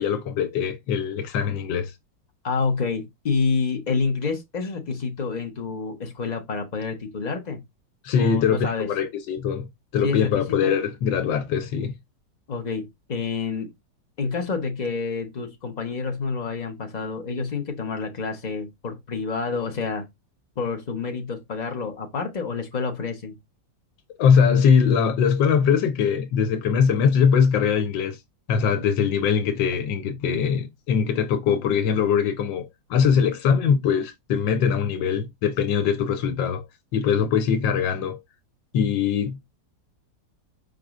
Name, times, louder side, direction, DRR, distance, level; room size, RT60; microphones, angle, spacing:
voice 1, 0.0-1.9 8.0-9.7 9.9-11.9 24.2-28.2 28.5-36.6 36.9-38.2 38.7-39.4, left 7 dB, 85° left, 1.4 m, -22 dB
voice 2, 2.4-7.6 8.2-8.9 10.0-10.7 12.5-13.7 14.2-20.1 20.6-23.3, left 4 dB, 70° left, 0.4 m, -28 dB
5.0 x 3.7 x 2.4 m
omnidirectional pair, 2.0 m